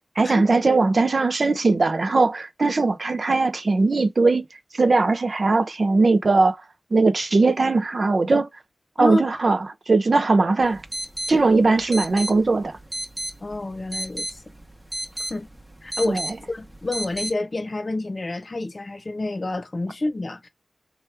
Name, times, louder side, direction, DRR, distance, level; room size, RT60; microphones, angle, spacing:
voice 1, 0.2-4.5 4.7-6.6 6.9-8.5 9.0-10.8 11.3-12.8 16.0-16.4, right 3 dB, 65° right, 0.5 m, -20 dB
sound 1, 10.6-17.3, right 1 dB, 15° right, 0.8 m, -34 dB
voice 2, 13.4-14.4 15.3-15.5 15.8-16.2 16.5-20.5, left 2 dB, 55° left, 0.7 m, -28 dB
3.0 x 2.2 x 3.3 m
cardioid pair, 45°, 0 cm